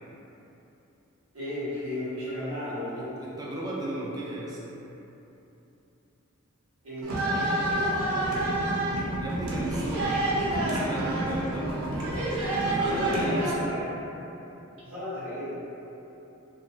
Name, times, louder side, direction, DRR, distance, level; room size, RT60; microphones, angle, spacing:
voice 1, 1.3-3.1 6.8-8.6 12.8-13.8 14.8-15.6, left 1 dB, 70° right, -11 dB, 1.0 m, -34 dB
voice 2, 2.6-4.6 9.2-12.3 12.6-13.7, right 1 dB, 20° right, -6 dB, 0.4 m, -35 dB
sound 1, 7.0-13.5, right 1 dB, 85° right, 0.5 m, -28 dB
2.9 x 2.5 x 2.4 m, 2.9 s
head